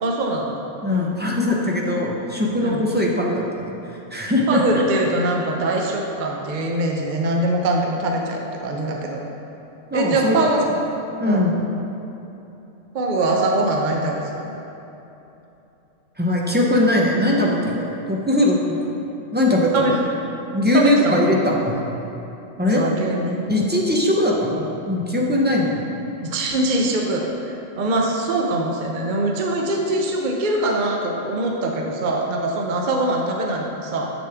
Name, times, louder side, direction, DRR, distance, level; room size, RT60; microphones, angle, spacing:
voice 1, 0.0-0.6 0.9-1.2 2.6-2.9 4.5-9.2 9.9-10.7 11.3-11.5 12.9-14.5 19.7-20.1 20.7-21.5 22.7-23.5 26.2-34.1, right 2 dB, 50° right, 0 dB, 0.7 m, -23 dB
voice 2, 0.8-3.8 4.1-4.6 9.9-10.5 11.2-11.6 16.2-18.9 19.3-20.0 20.5-21.9 22.6-22.9 23.5-25.9, left 1 dB, 15° right, -3 dB, 0.4 m, -20 dB
7.2 x 6.9 x 3.4 m, 3.0 s
omnidirectional pair, 1.3 m